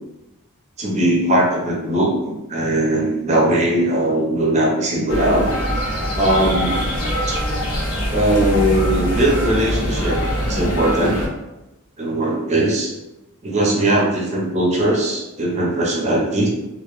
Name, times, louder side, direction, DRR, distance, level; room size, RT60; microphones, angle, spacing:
voice 1, 0.8-5.5 6.1-6.9 7.3-7.4 8.1-10.2 10.4-11.2 12.0-12.9 13.4-16.5, right 1 dB, 30° right, -2 dB, 0.5 m, -19 dB
sound 1, 5.1-11.3, equal, 80° left, 0.7 m, -23 dB
2.0 x 2.0 x 3.0 m, 0.97 s
head